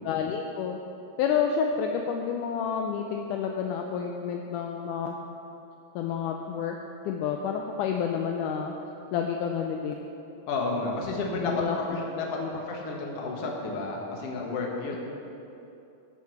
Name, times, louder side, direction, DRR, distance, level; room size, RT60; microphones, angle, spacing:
voice 1, 0.0-0.8 1.2-5.1 6.0-6.8 7.1-8.7 9.1-10.0 11.3-11.8 12.4-12.6, left 7 dB, 80° left, 3 dB, 1.9 m, -29 dB
voice 2, 10.5-11.6 11.9-15.0, left 3 dB, 55° left, -1 dB, 2.0 m, -31 dB
12.5 x 6.4 x 7.0 m, 2.8 s
omnidirectional pair, 4.0 m